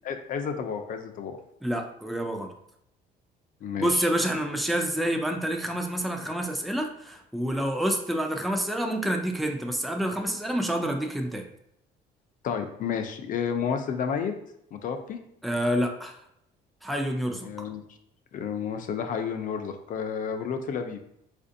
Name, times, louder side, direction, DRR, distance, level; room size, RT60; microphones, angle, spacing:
voice 1, 0.0-1.4 3.6-4.1 12.4-14.3 14.7-15.2 17.4-17.8 18.3-21.0, left 7 dB, 50° left, 6 dB, 0.5 m, -31 dB
voice 2, 1.6-2.5 3.8-11.5 15.4-16.2 16.8-17.7, equal, ahead, 3 dB, 0.4 m, -28 dB
4.1 x 2.5 x 2.6 m, 0.75 s
cardioid pair, 110°, 17 cm